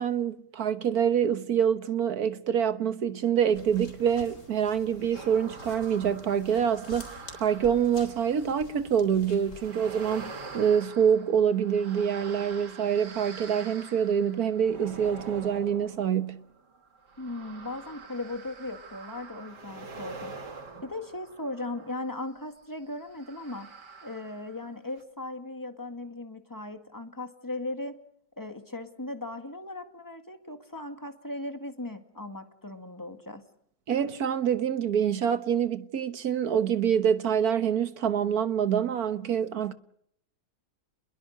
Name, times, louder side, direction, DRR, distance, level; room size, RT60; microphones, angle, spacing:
voice 1, 0.0-16.4 33.9-39.7, right 8 dB, 65° right, 1.6 m, -26 dB
sound 1, 3.5-9.7, left 2 dB, 45° left, 4.2 m, -48 dB
sound 2, 5.1-8.8 9.5-22.3 23.1-24.7 25.0-25.1, right 4 dB, 80° right, 2.7 m, -45 dB
voice 2, 17.2-20.4 20.8-23.7 24.0-28.0 28.4-33.4, left 2 dB, 10° left, 2.0 m, -38 dB
28.5 x 22.0 x 6.5 m
omnidirectional pair, 1.8 m